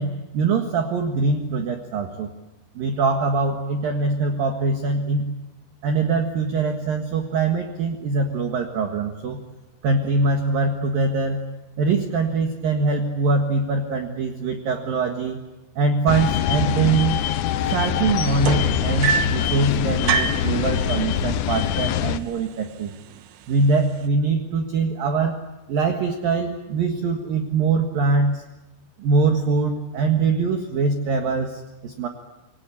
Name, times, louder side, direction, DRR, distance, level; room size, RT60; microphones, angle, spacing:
voice 1, 0.0-2.3 2.8-5.3 5.8-9.4 9.8-11.4 11.8-15.4 15.8-17.2 17.6-22.9 23.5-25.4 25.7-28.4 29.0-32.1, right 4 dB, 60° right, 4 dB, 2.8 m, -23 dB
sound 1, 16.1-22.2, left 10 dB, 80° left, 3.6 m, -24 dB
sound 2, 18.4-19.5 20.1-20.5 21.5-21.6 22.0-22.4 23.1-23.2, right 8 dB, 75° right, 3.1 m, -24 dB
28.0 x 23.0 x 8.4 m, 1.1 s
omnidirectional pair, 5.8 m